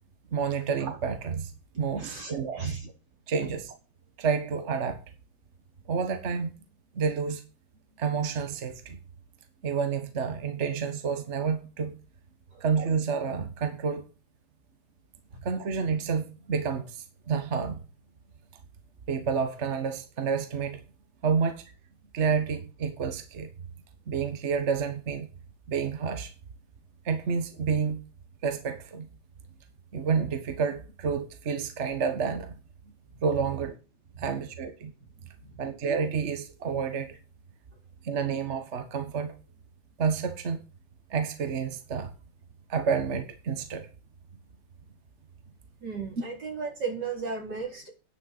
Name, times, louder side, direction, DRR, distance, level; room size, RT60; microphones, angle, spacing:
voice 1, 0.3-1.5 1.8-2.9 3.3-3.7 4.2-5.0 5.9-6.5 6.9-7.4 8.0-9.0 9.6-11.9 12.6-14.1 15.4-17.8 19.1-20.8 21.2-21.6 22.1-23.5 24.1-25.3 25.7-26.3 27.0-28.0 28.4-29.1 29.9-32.6 33.2-33.8 34.2-34.9 35.6-37.2 38.0-39.3 40.0-40.6 41.1-42.1 42.7-43.9, right 6 dB, 45° right, 1.5 m, -29 dB
voice 2, 2.0-2.8 12.5-12.6 34.2-34.3 45.8-47.9, right 5 dB, 85° right, 5.2 m, -35 dB
10.5 x 6.5 x 7.9 m
omnidirectional pair, 1.8 m